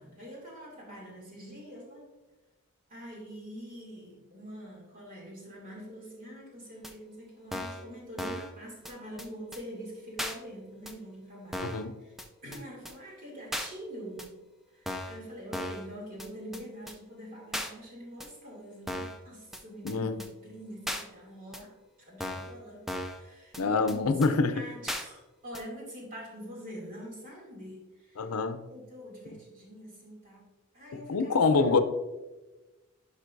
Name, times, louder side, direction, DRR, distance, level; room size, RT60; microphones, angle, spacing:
voice 1, 0.0-2.1 2.9-11.7 12.0-12.2 12.4-14.4 14.7-21.7 22.1-28.3 28.7-30.5 30.7-31.7, equal, 40° right, -3 dB, 2.5 m, -45 dB
sound 1, 6.8-6.9 7.5-7.8 8.2-8.5 8.9-9.0 9.2-9.3 9.5-9.6 10.2-10.4 10.9-11.0 11.5-11.8 12.2-12.3 12.5-12.6 12.9-13.0 13.5-13.7 14.2-14.3 14.9-15.2 15.5-15.9 16.2-16.3 16.5-16.6 16.9-17.0 17.5-17.7 18.2-18.3 18.9-19.2 19.5-19.6 19.9-20.0 20.2-20.3 20.9-21.0 21.5-21.6 22.2-22.5 22.9-23.2 23.5-23.6 23.9-24.0 24.2-24.3 24.9-25.0 25.5-25.6, equal, ahead, 0.4 m, -36 dB
voice 2, 11.6-11.9 19.8-20.1 23.6-24.6 28.2-28.6 30.9-31.8, left 4 dB, 85° left, 9 dB, 0.6 m, -26 dB
11.0 x 5.2 x 2.6 m, 1.1 s
head